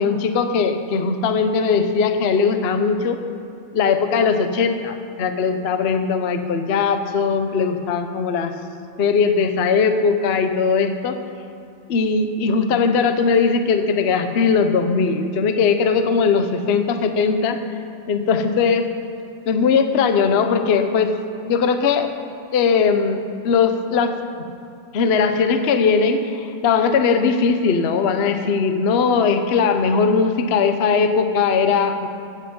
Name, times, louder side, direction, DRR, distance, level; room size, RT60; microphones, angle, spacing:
voice 1, 0.0-3.2 3.7-8.5 9.0-11.2 11.9-17.6 18.1-18.9 19.5-21.1 21.5-22.1 22.5-24.1 24.9-32.1, left 5 dB, 50° left, 8 dB, 0.8 m, -19 dB
15.5 x 8.8 x 5.3 m, 2.6 s
omnidirectional pair, 1.9 m